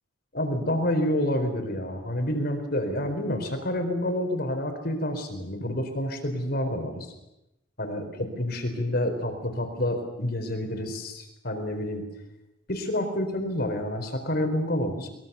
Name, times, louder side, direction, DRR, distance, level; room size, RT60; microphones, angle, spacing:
voice 1, 0.3-7.1 7.8-12.0 12.7-15.1, left 1 dB, 50° left, 6 dB, 4.5 m, -28 dB
24.0 x 22.0 x 7.1 m, 0.91 s
head